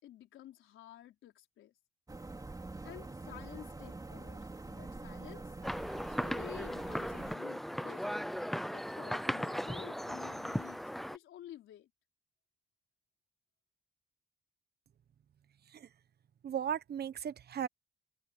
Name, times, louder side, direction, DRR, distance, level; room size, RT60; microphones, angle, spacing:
voice 1, 0.0-1.7 2.8-5.5 6.1-8.0 8.7-10.8 11.1-11.9, left 12 dB, 80° left, 4.5 m, -51 dB
sound 1, 2.1-7.4, right 2 dB, 20° right, 3.6 m, -45 dB
sound 2, 5.6-11.2, equal, ahead, 0.6 m, -37 dB
voice 2, 16.4-17.7, right 9 dB, 55° right, 1.1 m, -36 dB
open air
cardioid pair, 90°, 20 cm